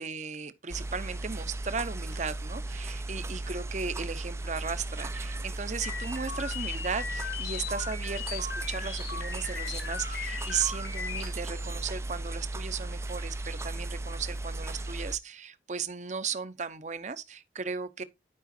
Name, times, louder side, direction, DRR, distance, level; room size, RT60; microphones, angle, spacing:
voice 1, 0.0-18.0, right 6 dB, 40° right, 0.7 m, -36 dB
sound 1, 0.7-15.2, right 2 dB, 15° right, 0.3 m, -36 dB
sound 2, 5.8-11.3, left 6 dB, 80° left, 1.7 m, -38 dB
12.0 x 5.0 x 2.6 m
head